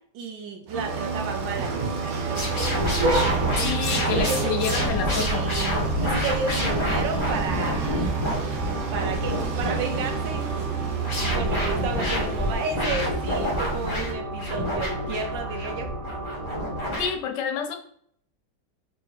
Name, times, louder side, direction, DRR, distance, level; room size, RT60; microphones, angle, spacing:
voice 1, 0.1-2.5 3.5-3.8 4.1-8.0 8.9-10.4 11.3-15.9, right 4 dB, 85° right, 4 dB, 1.5 m, -32 dB
sound 1, 0.7-17.1, right 1 dB, 35° right, 1.1 m, -33 dB
sound 2, 0.7-14.1, right 6 dB, 60° right, 1.0 m, -30 dB
sound 3, 2.4-17.1, left 1 dB, 20° left, 1.1 m, -28 dB
voice 2, 3.6-5.5 17.0-17.8, left 8 dB, 75° left, 5 dB, 1.3 m, -28 dB
3.9 x 3.8 x 3.4 m, 0.64 s
omnidirectional pair, 1.9 m